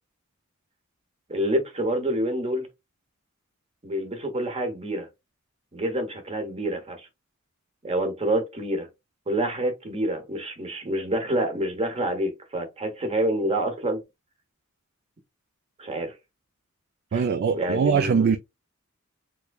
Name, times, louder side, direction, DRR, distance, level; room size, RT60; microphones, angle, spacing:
voice 1, 1.3-2.7 3.8-5.1 5.7-7.1 7.8-8.9 9.3-14.0 15.8-16.1 17.1-17.3 17.5-18.2, right 1 dB, 30° right, 0.9 m, -27 dB
voice 2, 17.1-18.4, right 6 dB, 50° right, 0.3 m, -22 dB
3.5 x 3.0 x 2.3 m
head